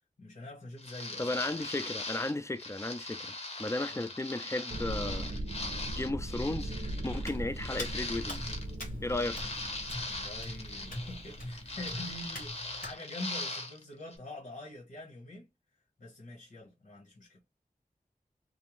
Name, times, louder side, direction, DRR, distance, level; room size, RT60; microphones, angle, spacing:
voice 1, 0.2-1.5 3.9-4.1 10.0-15.5 16.0-17.4, left 1 dB, 75° left, 1.0 m, -45 dB
sound 1, 0.8-8.8 9.1-13.8 14.1-14.2, left 2 dB, 50° left, 0.7 m, -40 dB
voice 2, 1.2-3.3 3.6-5.3 6.0-6.7 7.0-8.5 9.0-9.4, left 2 dB, 20° left, 0.4 m, -34 dB
sound 2, 4.7-12.5, right 1 dB, 75° right, 0.6 m, -40 dB
Hands, 7.2-13.0, left 1 dB, 90° left, 1.2 m, -44 dB
2.6 x 2.0 x 2.9 m
wide cardioid pair, 45°, 14 cm